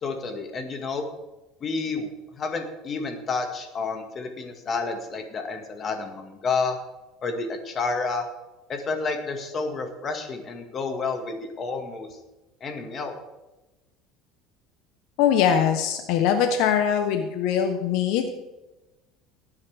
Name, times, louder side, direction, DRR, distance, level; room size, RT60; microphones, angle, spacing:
voice 1, 0.0-1.1 1.6-6.8 7.2-8.2 8.7-12.1 12.6-13.1, left 4 dB, 35° left, 5 dB, 2.0 m, -30 dB
voice 2, 15.2-18.3, left 8 dB, 70° left, 7 dB, 1.1 m, -22 dB
18.0 x 9.6 x 3.6 m, 1.0 s
cardioid pair, 135°, 0 cm